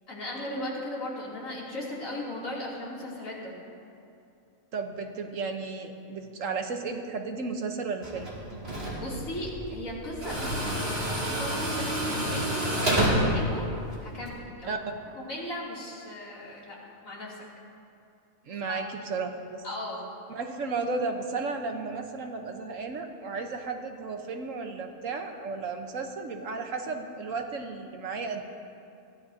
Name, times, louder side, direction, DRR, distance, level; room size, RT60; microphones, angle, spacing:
voice 1, 0.1-3.6 8.7-13.7 14.0-14.8 15.1-16.8 17.0-17.4 18.6-18.8 19.6-20.0, left 1 dB, 70° left, -6 dB, 3.4 m, -37 dB
voice 2, 4.7-8.3 14.7-14.8 18.4-19.6 20.3-28.4, right 4 dB, 70° right, 4 dB, 1.4 m, -34 dB
Tools, 8.0-14.3, right 1 dB, 45° right, 2.9 m, -29 dB
22.0 x 15.5 x 2.8 m, 2.5 s
omnidirectional pair, 1.4 m